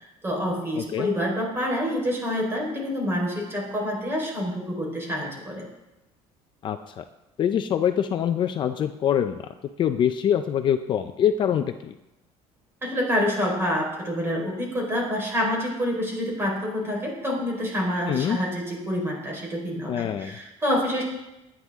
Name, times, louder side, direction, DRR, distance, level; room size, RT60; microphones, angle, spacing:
voice 1, 0.2-5.7 12.8-21.0, equal, 20° right, -1 dB, 4.5 m, -27 dB
voice 2, 0.8-1.1 6.6-7.0 7.4-9.4 9.8-11.9 18.1-18.4 19.9-20.4, left 9 dB, 40° left, 8 dB, 0.6 m, -24 dB
21.5 x 9.8 x 3.7 m, 0.96 s
cardioid pair, 155°, 12 cm